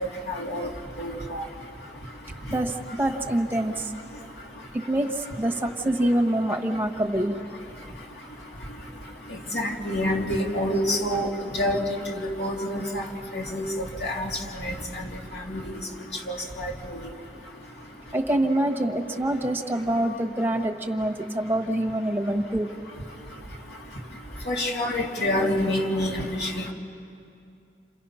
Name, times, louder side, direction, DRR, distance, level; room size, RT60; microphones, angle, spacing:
voice 1, 0.3-0.7 1.0-1.4 9.5-13.0 13.3-13.7 14.0-15.1 15.5-15.6 16.3-17.0 24.5-26.7, left 1 dB, 65° left, 0 dB, 2.6 m, -27 dB
voice 2, 2.5-3.9 4.7-7.4 15.4-15.5 18.1-22.7, right 1 dB, 10° right, 3 dB, 1.3 m, -25 dB
28.5 x 27.5 x 5.8 m, 2.6 s
head